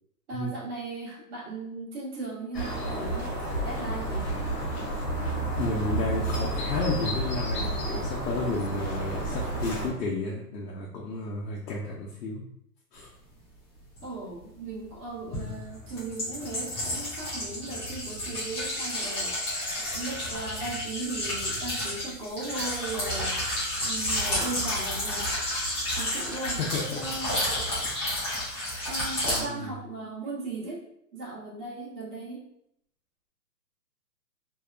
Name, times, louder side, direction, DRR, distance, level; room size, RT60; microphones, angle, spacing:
voice 1, 0.3-4.3 14.0-19.6 19.9-25.3 26.0-26.6 27.0-27.4 28.9-30.8 31.1-32.5, right 3 dB, 65° right, -4 dB, 1.2 m, -37 dB
sound 1, 2.5-9.9, right 1 dB, 40° left, 0.8 m, -30 dB
voice 2, 5.6-12.4 12.9-13.1 26.6-27.0 27.3-27.4 29.3-29.7, left 3 dB, 70° left, -3 dB, 0.7 m, -32 dB
Water-Metal-Bowl, 14.0-14.1 15.3-29.4, left 1 dB, 15° left, 0.4 m, -31 dB
2.8 x 2.1 x 2.4 m, 0.74 s
hypercardioid pair, 145°, 49 cm